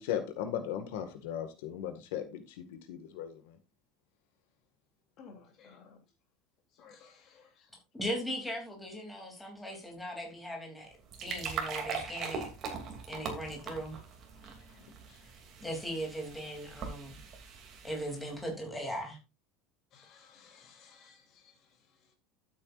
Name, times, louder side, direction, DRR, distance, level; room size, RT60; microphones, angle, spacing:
voice 1, 0.0-3.6, left 9 dB, 85° left, 1.9 m, -37 dB
voice 2, 5.2-6.0 6.8-7.7 14.4-15.3 19.9-21.5, left 5 dB, 40° left, 3.1 m, -57 dB
voice 3, 7.9-10.9 11.2-12.5 13.1-14.0 15.6-17.1 17.8-19.2, equal, 5° left, 3.0 m, -38 dB
sound 1, 10.8-18.4, right 5 dB, 35° right, 2.7 m, -41 dB
12.5 x 8.4 x 2.5 m
cardioid pair, 165°, 0 cm